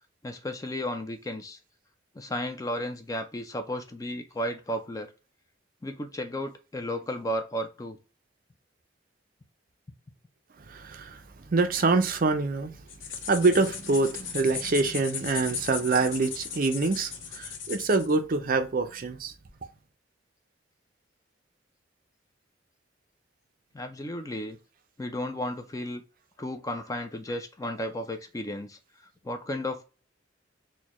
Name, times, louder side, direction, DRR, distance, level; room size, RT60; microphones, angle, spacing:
voice 1, 0.2-1.6 2.2-5.1 5.8-8.0 23.7-24.6 25.0-26.0 26.4-28.8 29.2-29.8, left 1 dB, 20° left, 0.3 m, -33 dB
voice 2, 10.7-11.2 11.5-12.7 13.3-19.3, right 3 dB, 45° right, 0.5 m, -25 dB
sound 1, 12.9-18.1, left 7 dB, 80° left, 0.6 m, -37 dB
4.2 x 2.2 x 2.9 m
head